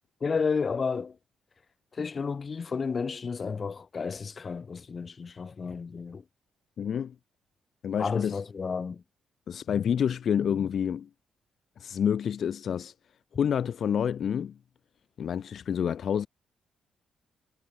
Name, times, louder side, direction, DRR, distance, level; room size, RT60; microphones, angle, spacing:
voice 1, 0.2-1.2 1.9-6.2 8.0-9.0, left 5 dB, 45° left, 4.8 m, -31 dB
voice 2, 6.8-7.1 7.8-8.4 9.5-11.1 11.8-12.9 13.3-14.6 15.2-16.3, left 8 dB, 60° left, 2.9 m, -28 dB
hypercardioid pair, 50°, 0 cm